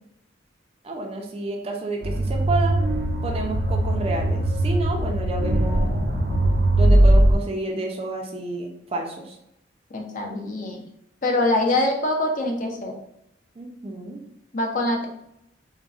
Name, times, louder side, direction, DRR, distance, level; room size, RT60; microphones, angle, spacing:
voice 1, 0.8-2.8 3.2-5.9 6.7-9.4 13.6-14.2, right 2 dB, 30° right, 1 dB, 0.4 m, -30 dB
sound 1, 2.0-7.4, right 1 dB, 75° right, 0.6 m, -20 dB
voice 2, 9.9-10.8 11.2-12.9 14.5-15.1, left 2 dB, 45° left, 1 dB, 0.5 m, -24 dB
3.7 x 2.1 x 2.4 m, 0.79 s
head